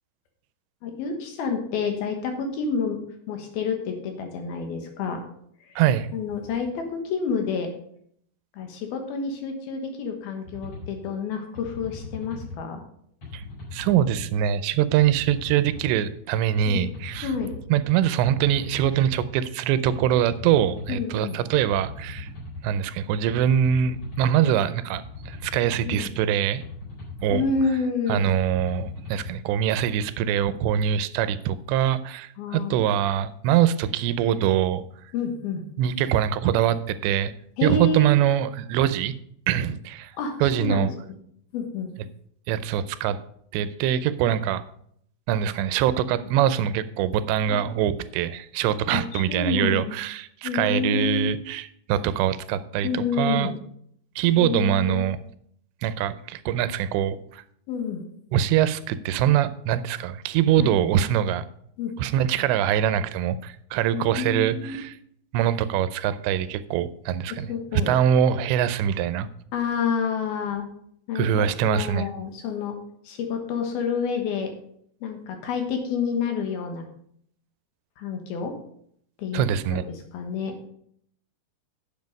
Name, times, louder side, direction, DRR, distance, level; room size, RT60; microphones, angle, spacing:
voice 1, 0.8-3.0 3.3-5.2 5.6-5.8 6.1-7.7 8.5-12.8 16.7-16.9 17.2-17.5 20.9-21.4 25.9-26.1 27.3-28.3 32.4-32.8 35.1-35.6 37.6-38.2 40.1-41.2 41.5-41.9 47.5-47.6 48.9-49.9 50.4-51.3 52.8-53.5 54.4-55.1 57.7-58.0 60.6-60.7 61.8-61.9 63.9-64.8 67.3-68.0 69.5-70.7 71.1-72.8 73.0-74.5 75.0-76.8 78.0-78.5 79.2-79.4 79.7-80.6, left 5 dB, 70° left, 4 dB, 2.9 m, -29 dB
voice 2, 5.8-6.1 13.3-13.4 13.7-17.3 17.7-22.3 22.6-26.6 27.2-27.4 28.1-34.8 35.8-37.3 37.6-39.1 39.5-40.1 40.4-40.9 42.5-43.2 43.5-44.6 45.3-53.5 54.2-55.2 55.8-57.4 58.3-61.5 62.0-64.9 65.3-67.5 67.9-69.3 71.2-72.1 79.3-79.8, right 10 dB, 85° right, 14 dB, 2.8 m, -23 dB
sound 1, 10.4-10.9 11.5-12.6 13.2-14.2 14.9-15.9 16.6-17.6 18.2-19.3 19.9-20.9 21.6-22.6 23.3-24.3 24.9-26.0 26.6-27.6 28.3-29.3, left 3 dB, 40° left, 5.0 m, -39 dB
9.6 x 7.6 x 5.2 m, 0.66 s
omnidirectional pair, 5.0 m